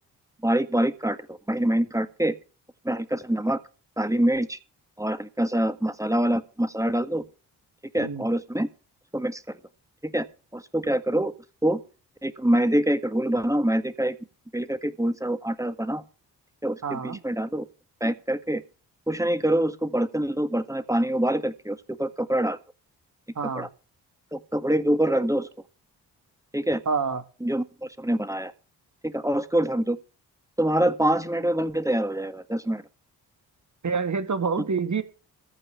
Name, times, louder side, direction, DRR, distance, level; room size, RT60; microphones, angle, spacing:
voice 1, 0.4-2.4 2.8-3.6 4.0-4.6 5.0-7.2 7.9-8.7 9.1-9.6 10.0-10.3 10.5-11.3 11.6-11.8 12.2-14.2 14.5-16.0 16.6-17.7 18.0-18.6 19.1-22.6 23.4-23.7 24.3-25.5 26.5-26.8 27.4-28.5 29.0-30.0 30.6-32.8, right 1 dB, 5° right, 1.8 m, -25 dB
voice 2, 16.8-17.2 23.4-23.7 26.9-27.2 33.8-35.0, right 5 dB, 40° right, 2.2 m, -27 dB
15.0 x 5.5 x 8.5 m
hypercardioid pair, 40°, 45 cm